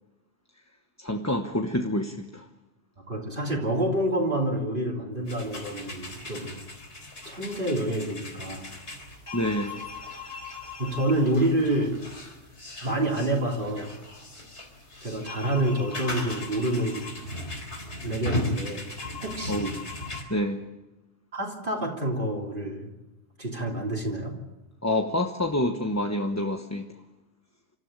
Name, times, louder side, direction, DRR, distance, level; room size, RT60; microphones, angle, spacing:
voice 1, 1.0-2.5 9.3-9.9 19.5-19.8 20.3-20.6 24.8-26.9, left 1 dB, 15° left, 4 dB, 1.2 m, -27 dB
voice 2, 3.1-6.6 7.2-8.7 10.8-12.0 12.8-14.0 15.0-17.2 18.0-18.9 19.2-19.8 21.3-22.9 23.4-24.3, right 1 dB, 50° right, 0 dB, 3.4 m, -28 dB
sound 1, 5.3-20.2, left 1 dB, 75° left, 4.3 m, -38 dB
26.5 x 14.0 x 8.9 m, 1.0 s
omnidirectional pair, 1.2 m